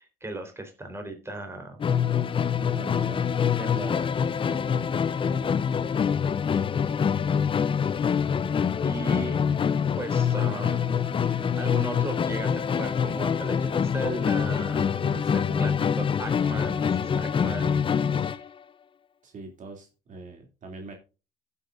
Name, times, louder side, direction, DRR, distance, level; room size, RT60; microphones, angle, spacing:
voice 1, 0.0-1.8 2.8-3.1 3.6-4.1 4.5-4.7 8.8-9.4 10.0-15.1 15.3-18.0 18.3-18.4, right 2 dB, 15° right, 4 dB, 3.8 m, -37 dB
Musical instrument, 1.8-18.5, left 7 dB, 30° left, 0.5 m, -25 dB
voice 2, 2.7-3.2 5.3-5.5 15.0-15.8 19.2-21.0, right 3 dB, 50° right, 2 dB, 2.6 m, -42 dB
15.0 x 8.2 x 2.5 m, 0.31 s
cardioid pair, 110°, 17 cm